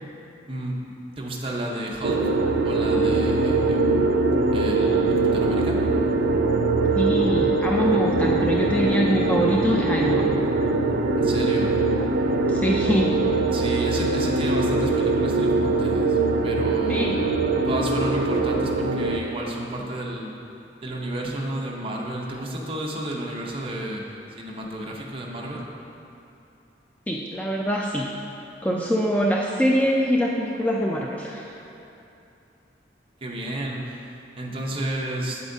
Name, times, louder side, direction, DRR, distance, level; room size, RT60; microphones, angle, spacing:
voice 1, 0.5-2.2 2.6-4.1 4.5-5.8 11.1-11.8 13.5-17.3 17.7-20.3 20.8-24.0 24.4-25.6 33.2-34.0 34.4-35.4, right 1 dB, 30° right, -2 dB, 0.8 m, -32 dB
sound 1, 2.0-19.2, right 3 dB, 80° right, 0.5 m, -22 dB
voice 2, 7.0-10.3 12.5-13.2 16.9-17.2 27.1-28.1 28.6-31.6, equal, 10° left, -2 dB, 0.3 m, -24 dB
8.1 x 7.9 x 2.7 m, 2.8 s
head